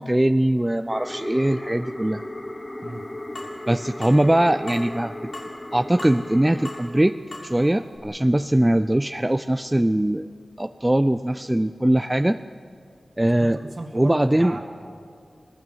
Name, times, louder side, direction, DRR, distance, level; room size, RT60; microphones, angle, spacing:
voice 1, 0.0-2.2 3.7-5.3 5.7-7.2 7.4-10.3 10.6-12.4 13.2-13.6 13.9-14.5, right 1 dB, 15° right, 9 dB, 0.5 m, -21 dB
sound 1, 0.9-6.9, left 1 dB, 25° left, 1.3 m, -36 dB
sound 2, 3.4-3.6 4.0-4.2 4.7-4.9 5.3-5.6 6.0-6.3 6.7-6.8 7.3-7.5 8.0-8.1, left 2 dB, 65° left, 7.2 m, -37 dB
voice 2, 13.2-14.6, right 2 dB, 50° right, -1 dB, 2.0 m, -35 dB
27.5 x 19.0 x 7.9 m, 2.3 s
wide cardioid pair, 75°, 0 cm